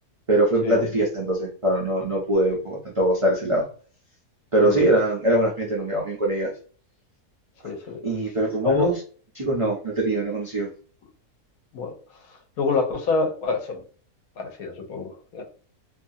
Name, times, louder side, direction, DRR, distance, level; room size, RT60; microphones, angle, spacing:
voice 1, 0.3-3.7 4.5-6.5 8.0-8.9 9.4-10.7, right 1 dB, 45° right, -4 dB, 0.4 m, -22 dB
voice 2, 7.6-8.0 8.6-8.9 11.7-11.9 12.6-13.8 14.4-15.4, left 4 dB, 70° left, 3 dB, 1.1 m, -26 dB
2.7 x 2.3 x 2.6 m, 0.41 s
omnidirectional pair, 1.6 m